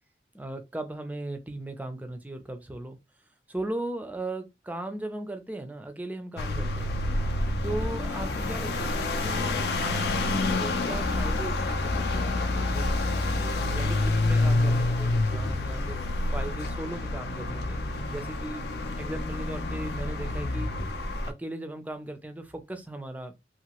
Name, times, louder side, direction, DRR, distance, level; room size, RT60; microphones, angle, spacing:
voice 1, 0.3-3.0 3.5-7.0 7.6-12.9 13.5-17.8 18.1-18.6 19.0-20.7 21.3-23.3, right 1 dB, 10° right, 0.4 m, -37 dB
sound 1, 6.4-21.3, left 2 dB, 65° left, 0.5 m, -28 dB
2.8 x 2.4 x 2.9 m
head